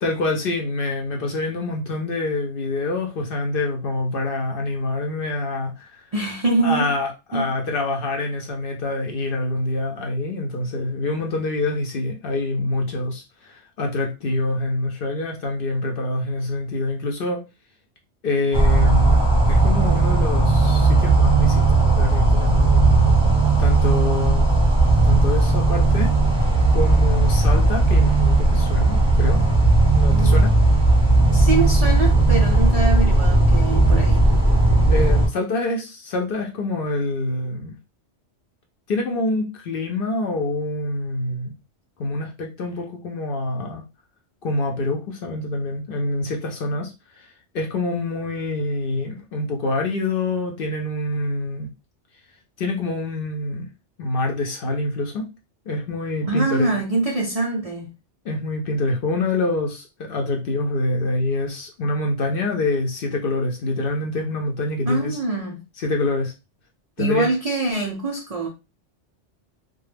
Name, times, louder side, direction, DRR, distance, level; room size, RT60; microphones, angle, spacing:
voice 1, 0.0-6.0 6.6-17.4 18.2-19.2 19.5-23.1 23.6-24.5 25.0-26.1 26.7-29.4 29.9-30.5 34.9-37.7 38.9-41.5 42.0-43.8 44.4-46.9 47.2-47.3 47.5-51.7 52.6-53.7 54.0-55.2 55.7-56.7 58.2-65.2 65.8-66.3 67.0-67.3, left 2 dB, 60° left, 0.6 m, -26 dB
voice 2, 6.1-6.9 7.3-7.5 19.6-19.7 30.1-30.4 31.3-34.2 56.3-57.9 64.9-65.6 67.0-68.5, right 3 dB, 55° right, 0.4 m, -24 dB
sound 1, 18.5-35.3, right 2 dB, 5° right, 0.7 m, -16 dB
2.2 x 2.0 x 3.2 m
omnidirectional pair, 1.2 m